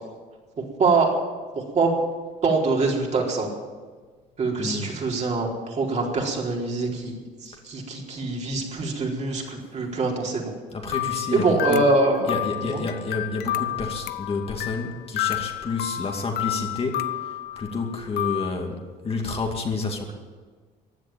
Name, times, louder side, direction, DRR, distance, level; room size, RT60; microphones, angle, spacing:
voice 1, 0.6-1.1 1.5-1.9 2.4-3.5 4.4-10.5 11.3-12.4 12.7-12.8, right 3 dB, 45° right, -1 dB, 4.3 m, -24 dB
voice 2, 4.6-4.9 10.7-11.8 12.3-20.1, left 3 dB, 35° left, 2 dB, 2.5 m, -30 dB
sound 1, 10.9-18.5, left 14 dB, 75° left, 0.8 m, -30 dB
15.5 x 10.5 x 9.1 m, 1.4 s
cardioid pair, 110°, 17 cm